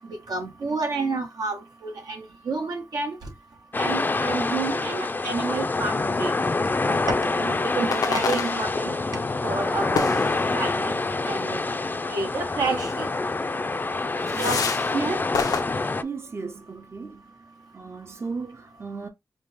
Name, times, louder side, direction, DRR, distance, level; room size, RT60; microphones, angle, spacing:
voice 1, 0.3-3.2 3.8-6.3 7.3-8.9 9.4-10.2 10.5-10.9 11.3-11.6 12.1-13.1 14.3-14.6 14.9-15.2, right 3 dB, 85° right, 1.5 m, -29 dB
sound 1, 3.7-16.0, left 3 dB, 30° left, 0.5 m, -26 dB
sound 2, 7.3-7.5 7.9-9.1 9.9-10.8 12.0-12.2 12.5-12.7 13.1-13.3 13.7-13.9 14.3-15.0 15.3-15.6, left 6 dB, 90° left, 0.7 m, -29 dB
voice 2, 15.9-17.2 17.7-19.1, right 4 dB, 40° right, 0.7 m, -36 dB
5.1 x 2.4 x 3.6 m
cardioid pair, 65°, 6 cm